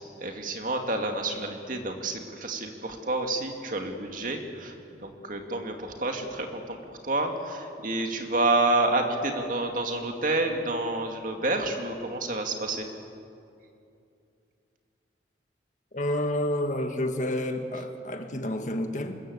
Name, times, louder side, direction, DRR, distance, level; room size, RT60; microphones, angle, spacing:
voice 1, 0.2-4.7 5.0-12.9, right 2 dB, 45° right, 4 dB, 2.4 m, -29 dB
voice 2, 15.9-19.2, left 1 dB, 45° left, 6 dB, 1.7 m, -29 dB
26.0 x 21.5 x 8.1 m, 2.6 s
head